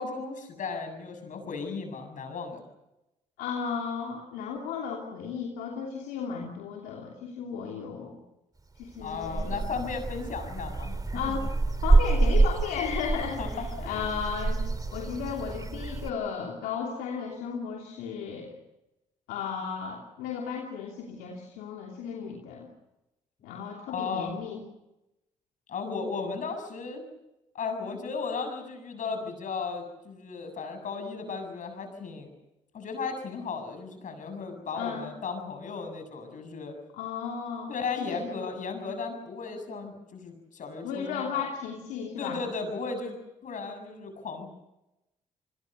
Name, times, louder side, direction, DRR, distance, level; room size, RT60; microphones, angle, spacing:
voice 1, 0.0-2.6 9.0-11.4 13.4-14.1 19.6-19.7 23.4-23.5 23.9-24.3 25.7-27.0 27.5-32.3 32.7-36.7 37.7-41.4 42.2-43.2 43.4-44.5, left 4 dB, 60° left, 6 dB, 7.3 m, -35 dB
voice 2, 3.4-8.2 8.8-9.6 11.1-11.5 11.8-14.6 14.9-18.5 19.3-22.7 23.4-24.6 34.7-35.1 36.9-37.7 38.1-38.2 40.8-42.4, left 6 dB, 85° left, -1 dB, 3.0 m, -34 dB
sound 1, 8.8-16.1, right 3 dB, 25° right, 2.5 m, -27 dB
30.0 x 21.0 x 6.7 m, 0.92 s
supercardioid pair, 55°, 15 cm